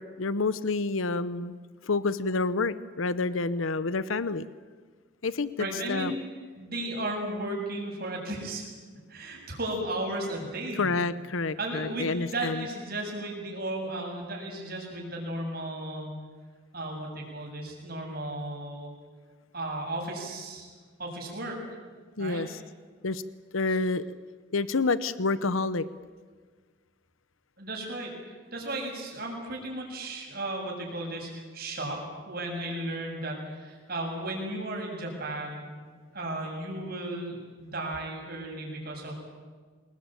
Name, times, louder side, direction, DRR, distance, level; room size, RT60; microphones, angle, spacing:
voice 1, 0.0-1.6 1.8-4.4 5.2-5.5 5.9-6.1 10.8-12.6 22.2-22.6 23.0-23.2 23.5-24.1 24.5-25.9, left 3 dB, 80° left, 15 dB, 0.8 m, -28 dB
voice 2, 5.6-6.2 6.6-8.7 9.1-10.9 11.6-16.1 16.7-18.9 19.5-20.7 21.0-21.8 22.2-22.4 23.7-23.8 27.6-35.7 36.1-39.2, right 1 dB, 50° right, 0 dB, 7.4 m, -35 dB
26.0 x 21.0 x 9.1 m, 1.5 s
head